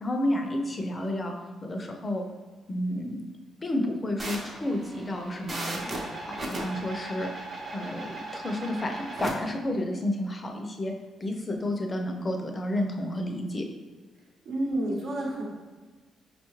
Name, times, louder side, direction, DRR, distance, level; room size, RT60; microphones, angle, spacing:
voice 1, 0.0-1.3 1.6-2.3 2.7-3.2 3.6-5.9 6.2-7.3 7.7-10.9 11.2-13.7, left 1 dB, 25° left, 3 dB, 0.5 m, -31 dB
sound 1, 4.2-9.3, right 2 dB, 40° right, 0.7 m, -37 dB
voice 2, 14.4-15.4, right 1 dB, 65° right, -2 dB, 0.9 m, -29 dB
4.7 x 2.3 x 3.1 m, 1.4 s
cardioid pair, 105°, 0 cm